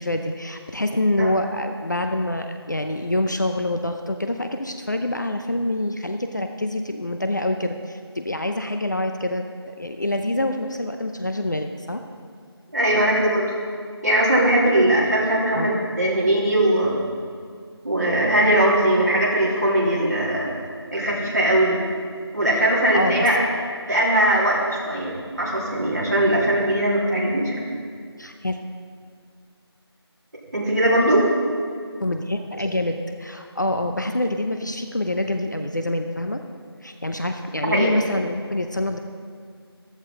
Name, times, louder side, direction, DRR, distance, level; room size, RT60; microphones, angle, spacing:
voice 1, 0.0-12.0 15.5-15.8 22.9-23.3 28.2-28.6 32.0-36.4 36.8-39.0, left 1 dB, 45° left, 6 dB, 0.7 m, -26 dB
voice 2, 12.7-13.5 14.0-17.0 17.8-20.5 20.9-21.8 22.3-23.4 23.9-27.7 30.5-31.3 37.7-38.0, right 1 dB, 40° right, -6 dB, 3.4 m, -20 dB
14.5 x 13.5 x 3.8 m, 2.1 s
figure-of-eight pair, 180°, 14 cm